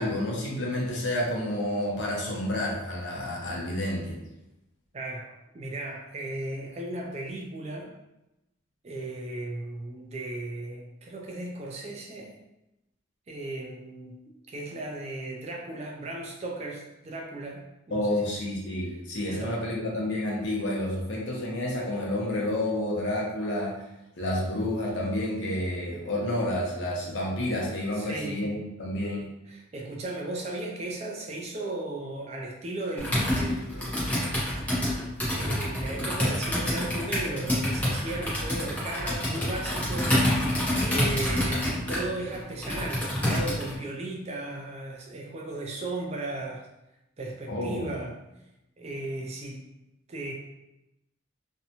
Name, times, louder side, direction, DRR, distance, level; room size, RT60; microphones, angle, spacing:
voice 1, 0.0-4.2 17.9-23.7 24.2-29.3 47.5-47.9, left 1 dB, 60° left, -3 dB, 0.7 m, -29 dB
voice 2, 4.9-7.9 8.8-12.4 13.3-14.2 14.5-18.2 19.3-19.6 27.9-28.4 29.5-34.3 35.3-40.2 40.8-46.7 47.2-48.2 48.8-49.6 50.1-50.3, right 2 dB, 30° right, 0 dB, 0.3 m, -36 dB
Computer keyboard, 33.0-43.8, left 1 dB, 5° left, 0.6 m, -27 dB
2.6 x 2.1 x 2.8 m, 0.92 s
head